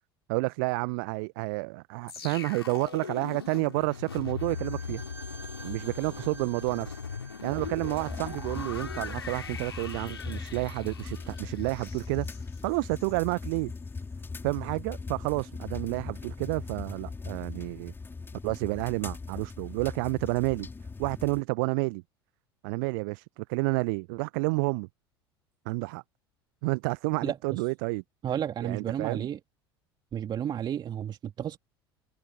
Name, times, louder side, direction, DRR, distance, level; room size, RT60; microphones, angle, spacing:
voice 1, 0.3-5.0 5.6-7.0 7.4-12.3 12.6-13.7 14.4-17.9 18.4-20.7 21.0-22.0 22.6-24.9 25.6-26.0 26.6-28.0 28.6-29.3, right 29 dB, 55° right, 1.1 m, -30 dB
sound 1, 2.1-13.2 13.5-13.7, left 6 dB, 80° left, 4.3 m, -40 dB
Bowed string instrument, 4.4-9.2, right 4 dB, 15° right, 6.6 m, -50 dB
sound 2, 7.5-21.4, left 4 dB, 15° left, 3.9 m, -40 dB
voice 2, 27.2-27.6 28.2-29.4 30.1-31.6, right 9 dB, 35° right, 2.5 m, -32 dB
figure-of-eight pair, 70°, 13 cm